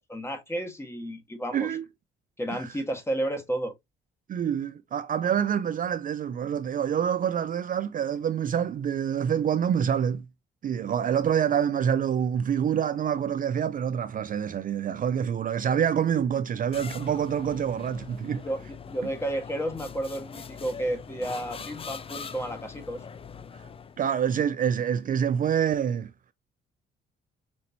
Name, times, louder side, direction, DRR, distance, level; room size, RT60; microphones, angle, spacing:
voice 1, 0.1-1.7 2.4-3.7 18.4-23.0, right 1 dB, 15° left, 1.3 m, -32 dB
voice 2, 1.5-1.8 2.5-2.6 4.3-10.2 10.6-18.5 24.0-26.1, right 8 dB, 45° right, 0.4 m, -26 dB
sound 1, 16.7-24.1, left 6 dB, 30° left, 0.4 m, -42 dB
5.3 x 2.9 x 2.6 m
cardioid pair, 90°, 20 cm